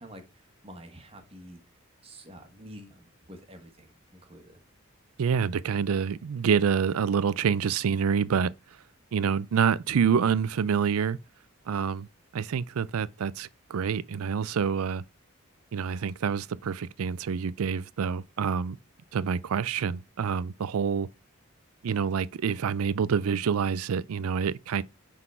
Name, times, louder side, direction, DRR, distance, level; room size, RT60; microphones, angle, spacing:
voice 1, 0.0-1.6 2.0-4.6, equal, 25° right, 1.3 m, -48 dB
voice 2, 5.2-8.5 9.1-11.2 11.7-12.1 12.3-15.0 15.7-18.8 19.1-21.1 21.8-24.8, right 6 dB, 80° right, 0.4 m, -27 dB
5.9 x 3.7 x 4.3 m
head